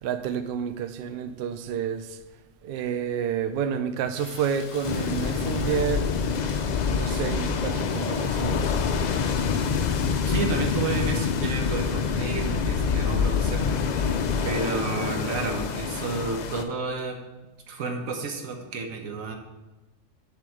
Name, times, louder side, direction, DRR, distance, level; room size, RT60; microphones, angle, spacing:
voice 1, 0.0-2.2 2.6-6.2 6.9-8.7, right 8 dB, 65° right, 0.6 m, -29 dB
Rain, 4.1-11.5, left 5 dB, 50° left, 0.8 m, -45 dB
sound 1, 4.8-16.6, left 6 dB, 85° left, 0.3 m, -26 dB
voice 2, 10.3-14.1 14.4-17.2 17.7-19.4, right 4 dB, 85° right, 1.4 m, -31 dB
7.4 x 3.6 x 6.4 m
omnidirectional pair, 1.4 m